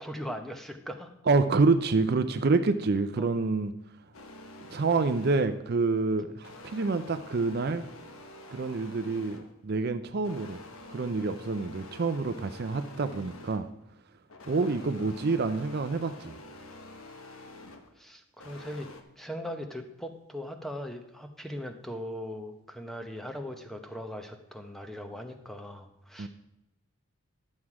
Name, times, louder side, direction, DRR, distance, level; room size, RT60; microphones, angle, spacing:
voice 1, 0.0-1.1 3.2-3.3 6.3-6.4 15.1-15.3 18.0-18.9 19.2-26.3, equal, ahead, 6 dB, 0.8 m, -39 dB
voice 2, 1.3-3.7 4.7-7.8 8.5-10.6 10.9-13.7 14.5-16.3 26.2-26.3, right 3 dB, 45° right, 10 dB, 0.4 m, -27 dB
sound 1, 4.1-5.7 6.4-9.7 10.2-13.8 14.3-17.9 18.4-19.0, left 2 dB, 70° left, 1.1 m, -47 dB
11.5 x 7.4 x 4.8 m, 0.86 s
head